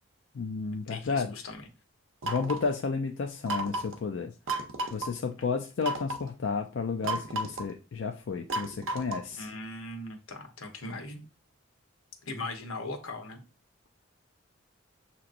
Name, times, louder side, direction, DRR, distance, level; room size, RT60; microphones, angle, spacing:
voice 1, 0.3-1.3 2.2-4.3 4.9-9.5, left 4 dB, 60° left, 4 dB, 0.4 m, -32 dB
voice 2, 0.9-1.7 9.4-11.2 12.2-13.4, left 2 dB, 90° left, 4 dB, 1.0 m, -39 dB
sound 1, 2.2-2.7 3.5-4.0 4.5-5.1 5.8-6.3 7.0-7.7 8.5-9.3, right 2 dB, 70° right, 0.7 m, -33 dB
6.8 x 2.9 x 2.5 m, 0.31 s
head